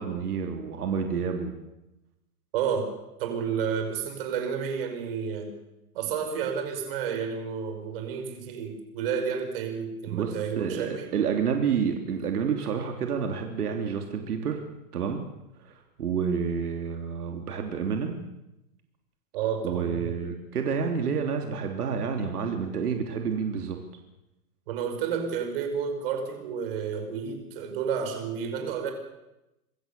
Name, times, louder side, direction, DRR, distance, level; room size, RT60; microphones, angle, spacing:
voice 1, 0.0-1.6 10.1-14.6 14.9-15.2 15.6-18.2 19.6-23.8, right 6 dB, 75° right, 3 dB, 3.4 m, -29 dB
voice 2, 2.5-2.9 3.2-5.5 5.9-11.1 19.3-20.1 24.7-28.9, right 7 dB, 35° right, 5 dB, 5.3 m, -31 dB
26.0 x 21.5 x 6.9 m, 0.92 s
hypercardioid pair, 175°, 46 cm